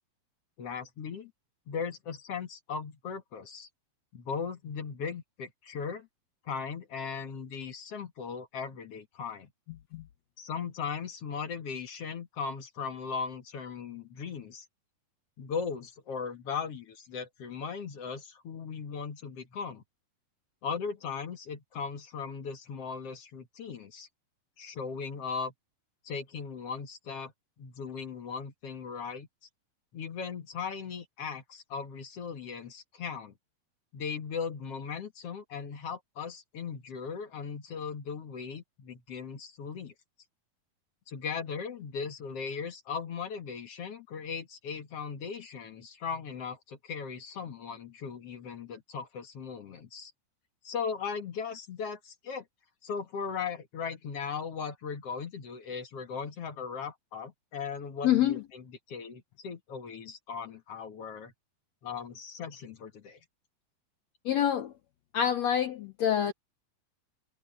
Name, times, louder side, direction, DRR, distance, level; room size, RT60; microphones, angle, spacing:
voice 1, 0.6-1.3 1.7-3.7 4.1-6.1 6.5-9.5 10.4-14.6 15.4-19.8 20.6-24.1 24.6-25.5 26.0-27.3 27.6-29.3 29.9-33.3 33.9-39.9 41.1-50.1 50.6-52.4 52.8-61.3 61.8-63.2, left 6 dB, 50° left, 2.1 m, -38 dB
voice 2, 58.0-58.4 64.2-64.7 65.1-66.3, left 10 dB, 75° left, 1.6 m, -26 dB
omnidirectional pair, 4.1 m